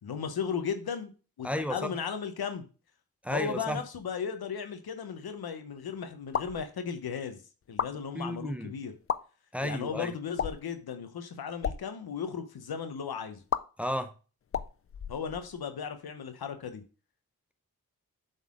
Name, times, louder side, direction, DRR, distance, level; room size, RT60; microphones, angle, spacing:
voice 1, 0.0-1.1 1.4-2.6 3.3-7.4 7.7-8.9 9.6-13.4 15.1-16.8, left 7 dB, 85° left, 0.9 m, -36 dB
voice 2, 1.4-1.9 3.2-3.8 8.1-8.7 9.5-10.1 13.8-14.1, equal, 5° right, 0.7 m, -32 dB
sound 1, 6.2-6.6 7.6-7.9 8.9-9.2 10.3-10.7 11.5-11.8 13.5-13.6 14.5-15.6, left 7 dB, 40° left, 0.4 m, -32 dB
7.4 x 4.1 x 3.6 m
cardioid pair, 55°, 36 cm